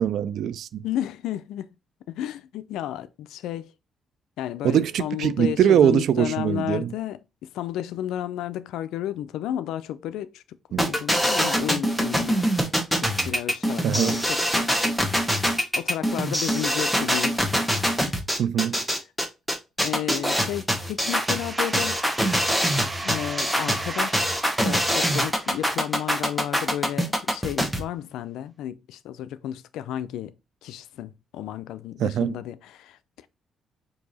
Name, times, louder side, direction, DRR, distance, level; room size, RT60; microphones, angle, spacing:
voice 1, 0.0-0.8 4.6-6.9 10.7-10.9 13.8-14.2 18.4-18.8 32.0-32.4, right 9 dB, 70° right, 0.3 m, -22 dB
voice 2, 0.8-1.7 2.1-3.7 4.4-12.4 13.0-14.7 15.8-17.4 18.1-18.2 19.8-22.1 23.0-30.3 30.6-33.3, left 11 dB, 85° left, 0.4 m, -32 dB
sound 1, 10.8-27.8, equal, ahead, 1.1 m, -24 dB
sound 2, 21.1-26.6, right 2 dB, 20° right, 0.7 m, -37 dB
4.6 x 2.7 x 4.1 m
cardioid pair, 90°, 0 cm